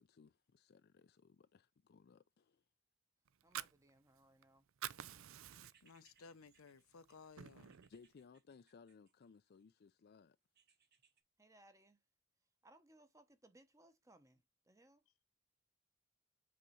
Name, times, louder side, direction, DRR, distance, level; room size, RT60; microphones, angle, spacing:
voice 1, 0.0-2.6 7.9-10.4, left 5 dB, 50° left, 0.4 m, -63 dB
Fire, 3.3-4.4 4.7-6.0 6.5-6.6 7.0-8.0, right 10 dB, 70° right, 0.5 m, -48 dB
voice 2, 3.4-4.7 11.4-12.0 12.6-15.0, right 1 dB, 15° right, 0.8 m, -67 dB
sound 1, 5.4-9.6 10.5-11.2, right 6 dB, 50° right, 1.4 m, -74 dB
voice 3, 5.8-7.8, left 4 dB, 80° left, 0.7 m, -59 dB
7.7 x 4.0 x 3.1 m
head